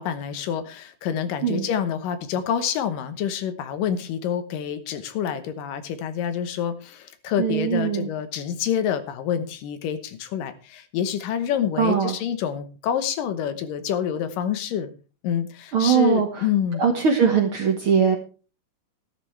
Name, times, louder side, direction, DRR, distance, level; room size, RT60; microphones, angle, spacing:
voice 1, 0.0-14.9 15.2-16.9, left 9 dB, 80° left, 10 dB, 2.7 m, -27 dB
voice 2, 7.4-8.1 11.8-12.2 15.7-16.4 16.8-18.2, right 7 dB, 55° right, 4 dB, 1.6 m, -21 dB
13.5 x 12.5 x 3.3 m, 0.35 s
omnidirectional pair, 3.9 m